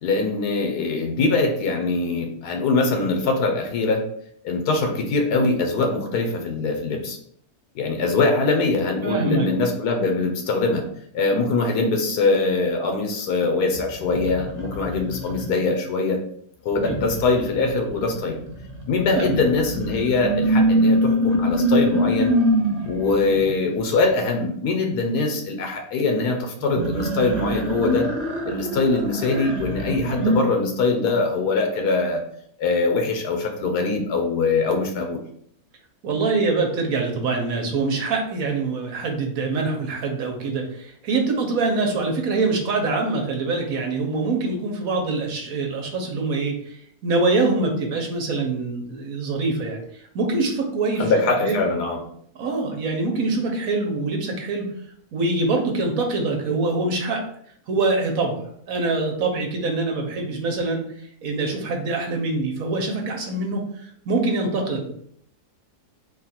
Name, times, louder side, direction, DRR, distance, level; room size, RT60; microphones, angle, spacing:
voice 1, 0.0-4.0 4.4-7.2 7.7-10.8 11.1-16.2 16.6-18.4 18.9-22.3 22.9-28.1 28.5-32.2 32.6-35.2 51.0-52.0, left 3 dB, 85° left, 4 dB, 1.4 m, -22 dB
voice 2, 9.0-9.5 16.8-17.1 19.1-19.4 36.0-51.1 51.4-51.6 52.4-54.7 55.1-57.2 57.7-58.4 58.7-60.8 61.2-64.9, right 3 dB, 65° right, 2 dB, 1.2 m, -24 dB
sound 1, 13.7-15.7 16.7-23.5 26.6-30.4, equal, 45° right, 1.3 m, -24 dB
4.0 x 2.4 x 4.2 m, 0.65 s
omnidirectional pair, 1.7 m